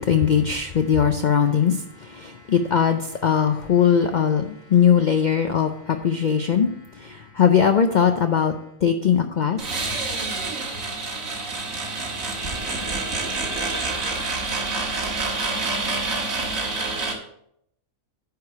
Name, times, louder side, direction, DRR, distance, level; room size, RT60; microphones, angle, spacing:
voice 1, 0.0-8.5 8.8-9.8, left 7 dB, 65° left, 0.4 m, -20 dB
sound 1, 9.6-17.1, right 3 dB, 75° right, 1.9 m, -27 dB
9.4 x 4.9 x 4.7 m
omnidirectional pair, 1.4 m